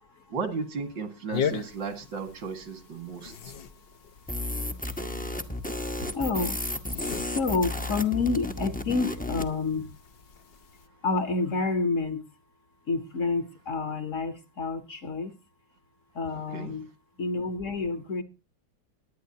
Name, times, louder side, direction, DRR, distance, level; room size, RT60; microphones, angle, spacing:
voice 1, 0.3-3.5 16.3-16.8, right 5 dB, 80° right, 2.6 m, -35 dB
sound 1, 1.3-10.9, left 7 dB, 75° left, 0.5 m, -39 dB
sound 2, 4.3-9.5, left 1 dB, 10° left, 0.4 m, -33 dB
voice 2, 6.0-6.6 7.1-9.9 11.0-12.2 12.9-15.3 16.1-16.8 17.2-18.2, left 4 dB, 50° left, 1.2 m, -29 dB
20.5 x 9.3 x 2.8 m
omnidirectional pair, 2.0 m